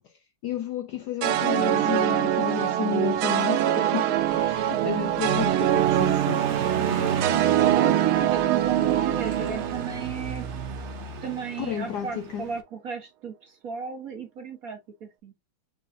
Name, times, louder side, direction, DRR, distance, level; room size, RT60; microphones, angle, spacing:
voice 1, 0.4-6.6 11.6-12.4, left 10 dB, 70° left, 1.0 m, -32 dB
sound 1, 1.2-10.5, right 11 dB, 85° right, 1.5 m, -24 dB
Car passing by, 4.2-12.6, right 5 dB, 65° right, 0.6 m, -36 dB
voice 2, 7.8-10.5 11.2-15.3, right 6 dB, 50° right, 1.3 m, -34 dB
5.4 x 3.7 x 2.7 m
omnidirectional pair, 2.3 m